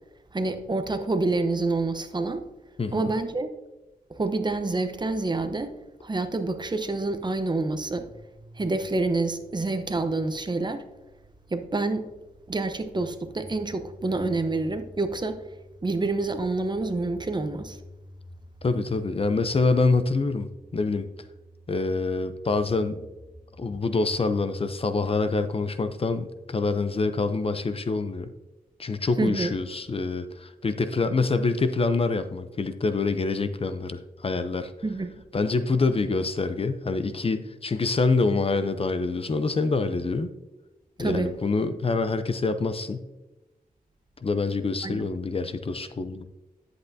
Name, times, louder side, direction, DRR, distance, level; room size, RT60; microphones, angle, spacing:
voice 1, 0.3-2.4 2.9-3.5 4.1-5.7 6.0-8.1 8.6-10.8 11.5-12.1 12.5-15.4 15.8-17.8 29.2-29.5 34.8-35.1 41.0-41.3 44.8-45.1, right 3 dB, 30° right, 9 dB, 0.8 m, -27 dB
voice 2, 2.8-3.1 18.6-21.1 21.7-23.1 23.6-28.3 28.8-34.7 35.3-40.3 41.0-43.0 44.2-46.2, left 3 dB, 40° left, 10 dB, 0.6 m, -26 dB
sound 1, 7.8-27.0, equal, 10° left, 1.0 m, -50 dB
10.5 x 7.9 x 2.7 m, 1.0 s
wide cardioid pair, 90°, 15 cm